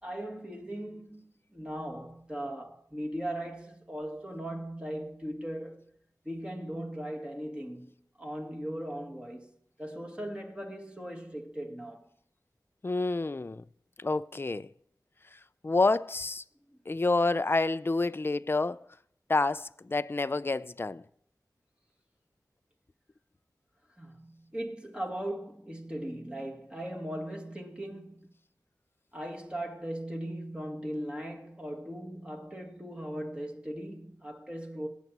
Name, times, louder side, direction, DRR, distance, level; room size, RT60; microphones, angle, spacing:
voice 1, 0.0-5.8 6.2-7.9 8.2-9.5 9.8-12.1 16.7-16.8 24.0-28.3 29.1-34.9, right 1 dB, 15° right, 1.9 m, -38 dB
voice 2, 12.8-13.6 14.0-14.7 15.3-16.4 16.9-18.8 19.3-21.0, left 3 dB, 35° left, 0.4 m, -28 dB
18.0 x 7.2 x 4.1 m
wide cardioid pair, 50°, 7 cm